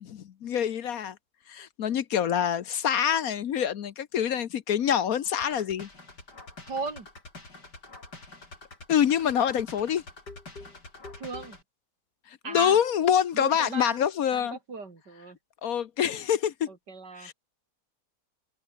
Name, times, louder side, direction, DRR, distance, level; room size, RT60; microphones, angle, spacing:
voice 1, 0.0-1.1 1.5-5.9 8.9-10.0 12.5-14.6 15.6-16.7 17.2-17.3, left 9 dB, 60° left, 1.3 m, -26 dB
sound 1, 5.4-11.6, left 3 dB, 80° left, 5.9 m, -46 dB
voice 2, 6.7-7.1 11.2-11.6 12.4-12.8 13.3-14.0 14.3-15.4 16.7-17.3, right 4 dB, 85° right, 4.2 m, -37 dB
omnidirectional pair, 1.8 m